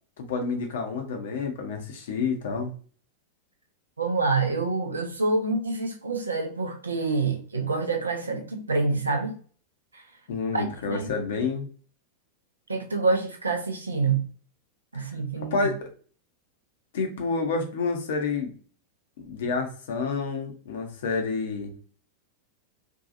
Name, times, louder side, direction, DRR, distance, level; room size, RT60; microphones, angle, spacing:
voice 1, 0.2-2.7 10.3-11.7 15.0-15.1 15.5-15.9 16.9-18.5 19.2-21.7, left 4 dB, 60° left, 0.6 m, -29 dB
voice 2, 4.0-9.4 9.9-10.0 10.5-11.1 12.7-14.3 14.9-15.7, right 3 dB, 75° right, 0.5 m, -27 dB
2.6 x 2.3 x 2.6 m
figure-of-eight pair, 90°, 0 cm